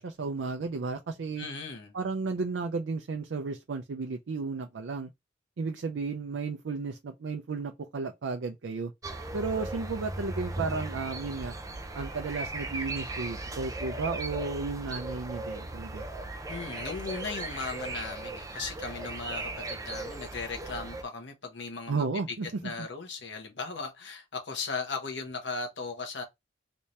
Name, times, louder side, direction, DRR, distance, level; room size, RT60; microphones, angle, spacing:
voice 1, 0.0-1.5 1.9-5.1 5.6-8.9 9.3-11.6 11.9-16.1 21.9-22.5, right 4 dB, 85° right, 0.5 m, -33 dB
voice 2, 1.4-1.9 16.5-22.4 22.6-26.2, left 4 dB, 70° left, 1.2 m, -37 dB
sound 1, 9.0-21.0, right 2 dB, 20° right, 0.5 m, -37 dB
3.4 x 2.8 x 3.2 m
head